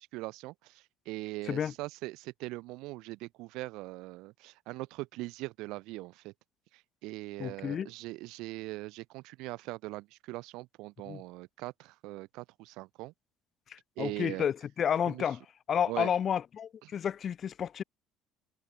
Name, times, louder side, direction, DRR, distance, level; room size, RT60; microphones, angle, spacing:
voice 1, 0.0-6.3 7.0-13.1 14.0-14.4 15.1-15.2 15.9-16.1 16.8-16.9, right 21 dB, 65° right, 0.8 m, -41 dB
voice 2, 7.4-7.9 11.1-11.2 13.7-15.4 15.7-17.8, left 8 dB, 45° left, 1.0 m, -31 dB
figure-of-eight pair, 60°, 0 cm